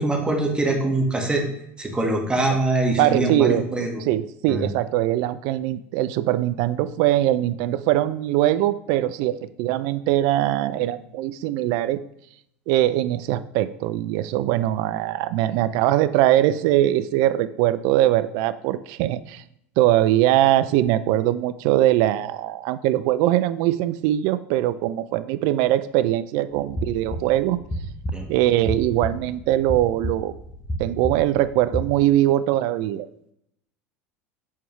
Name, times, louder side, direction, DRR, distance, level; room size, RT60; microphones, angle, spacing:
voice 1, 0.0-1.4 1.8-4.0 4.5-4.7 28.1-28.3, right 2 dB, 10° right, 1 dB, 1.5 m, -23 dB
voice 2, 3.0-3.6 4.0-12.0 12.7-19.4 19.8-27.6 28.3-30.3 30.8-33.1, right 13 dB, 60° right, 14 dB, 0.3 m, -21 dB
sound 1, 26.5-31.8, right 1 dB, 20° left, 1.4 m, -32 dB
7.3 x 4.5 x 3.1 m, 0.73 s
hypercardioid pair, 85°, 7 cm